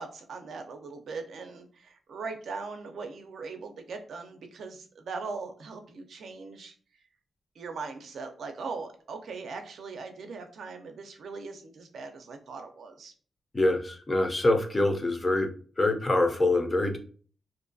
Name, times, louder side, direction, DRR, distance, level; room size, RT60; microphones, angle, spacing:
voice 1, 0.0-6.7 7.6-13.1, right 4 dB, 70° right, 5 dB, 0.4 m, -40 dB
voice 2, 13.5-15.5 15.8-17.0, left 2 dB, 20° left, 5 dB, 0.5 m, -25 dB
2.5 x 2.2 x 2.5 m, 0.42 s
wide cardioid pair, 115°, 0 cm